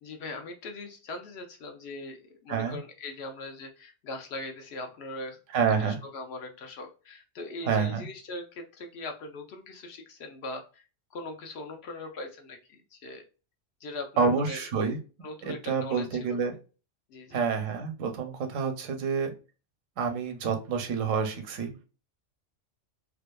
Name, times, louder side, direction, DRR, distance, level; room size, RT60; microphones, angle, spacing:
voice 1, 0.0-5.4 5.7-13.2 13.8-14.7 15.2-16.4 17.1-17.4, left 2 dB, 65° left, 3 dB, 0.8 m, -40 dB
voice 2, 5.5-6.0 7.7-8.0 14.2-15.0 15.4-16.6 17.3-19.3 20.0-21.7, right 5 dB, 90° right, 6 dB, 1.0 m, -28 dB
2.6 x 2.3 x 2.2 m, 0.34 s
omnidirectional pair, 1.3 m